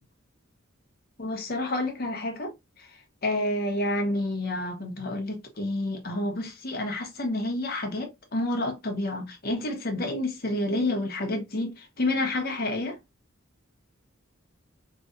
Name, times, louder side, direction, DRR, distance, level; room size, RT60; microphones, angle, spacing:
voice 1, 1.2-2.5 3.2-13.0, left 1 dB, 50° left, 1.0 m, -29 dB
4.0 x 3.0 x 2.5 m
head